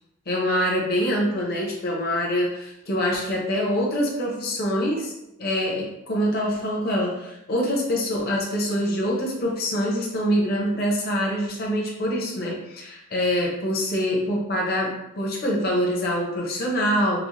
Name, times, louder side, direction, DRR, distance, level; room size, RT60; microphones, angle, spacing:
voice 1, 0.3-5.1 5.4-17.3, equal, 50° left, -2 dB, 0.8 m, -25 dB
4.0 x 2.1 x 3.0 m, 0.87 s
head